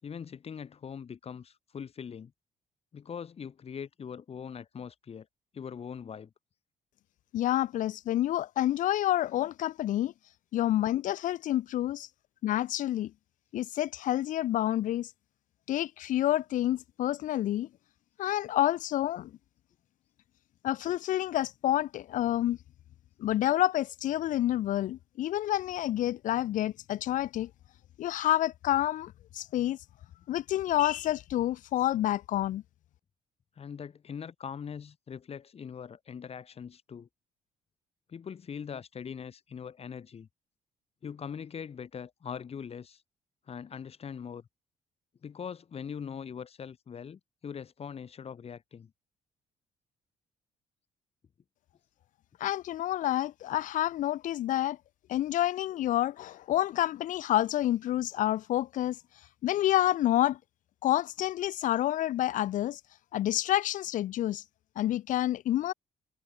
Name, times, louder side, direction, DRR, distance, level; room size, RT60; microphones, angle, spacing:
voice 1, 0.0-2.3 2.9-5.3 5.5-6.3 33.6-37.1 38.1-40.3 41.0-43.0 43.5-44.5 45.2-48.9, left 7 dB, 45° left, 5.9 m, -42 dB
voice 2, 7.3-10.1 10.5-12.1 12.4-13.1 13.5-15.1 15.7-17.7 18.2-19.3 20.6-22.6 23.2-27.5 28.0-29.8 30.3-32.6 52.4-54.8 55.1-59.0 59.4-60.4 60.8-62.8 63.1-64.4 64.8-65.7, left 13 dB, 70° left, 1.0 m, -28 dB
cardioid pair, 85°, 14 cm